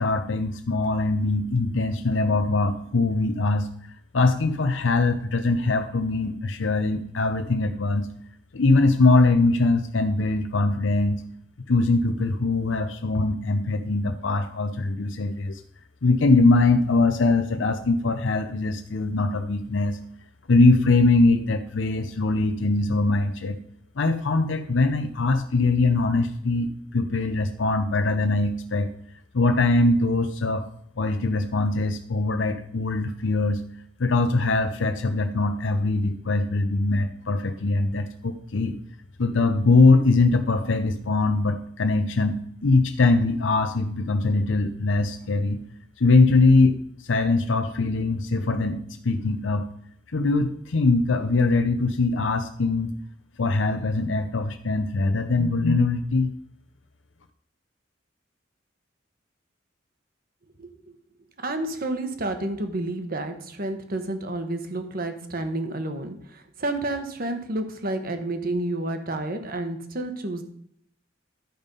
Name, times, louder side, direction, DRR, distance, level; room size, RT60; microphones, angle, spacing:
voice 1, 0.0-3.7 4.1-8.1 8.5-11.2 11.7-15.6 16.0-20.0 20.5-23.6 24.0-28.9 29.3-30.6 31.0-33.6 34.0-38.8 39.2-42.4 42.6-45.6 46.0-49.6 50.1-52.9 53.4-56.3, left 3 dB, 85° left, 7 dB, 0.7 m, -22 dB
voice 2, 60.6-60.9 61.4-70.4, right 2 dB, 50° right, 7 dB, 1.2 m, -30 dB
11.5 x 5.4 x 5.3 m, 0.67 s
head